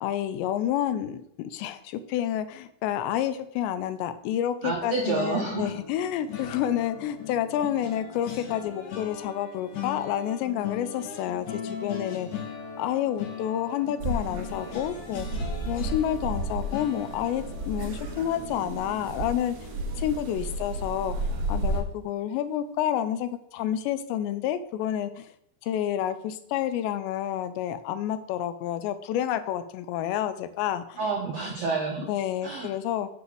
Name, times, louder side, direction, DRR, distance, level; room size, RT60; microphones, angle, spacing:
voice 1, 0.0-12.4 12.8-15.3 15.7-19.7 20.0-21.2 21.5-25.3 25.6-31.0 32.0-33.1, left 11 dB, 90° left, 12 dB, 2.9 m, -29 dB
voice 2, 4.6-5.7 31.0-32.1 32.4-32.7, right 4 dB, 75° right, 0 dB, 1.5 m, -29 dB
sound 1, 5.4-20.6 21.0-21.2 21.5-21.7, left 7 dB, 60° left, 2.5 m, -40 dB
sound 2, 14.0-21.8, right 2 dB, 55° right, 2.0 m, -33 dB
8.2 x 5.3 x 7.6 m, 0.73 s
omnidirectional pair, 5.1 m